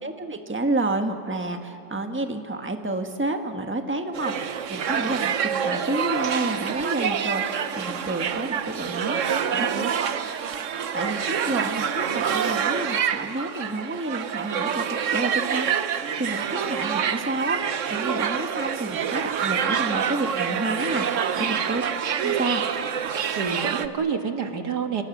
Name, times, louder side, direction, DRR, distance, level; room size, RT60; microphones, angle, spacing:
voice 1, 0.0-9.2 9.5-9.7 10.0-10.1 10.4-10.5 10.9-21.8 22.2-22.6, right 2 dB, 10° right, 5 dB, 1.4 m, -30 dB
sound 1, 4.1-23.9, right 7 dB, 55° right, 1.2 m, -27 dB
voice 2, 9.3-9.9 21.4-21.6 23.4-25.0, right 6 dB, 90° right, 5 dB, 2.4 m, -29 dB
29.5 x 27.0 x 7.3 m, 2.8 s
omnidirectional pair, 1.7 m